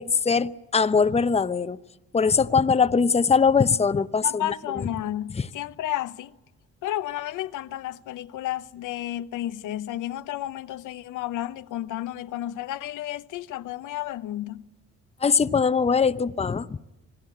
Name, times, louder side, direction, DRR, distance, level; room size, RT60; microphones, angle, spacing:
voice 1, 0.0-1.8 2.1-4.9 5.4-5.5 15.2-16.8, left 5 dB, 20° left, 0.8 m, -22 dB
voice 2, 4.2-6.3 6.8-14.7, left 13 dB, 85° left, 0.9 m, -32 dB
26.5 x 18.5 x 8.6 m
cardioid pair, 90°, 30 cm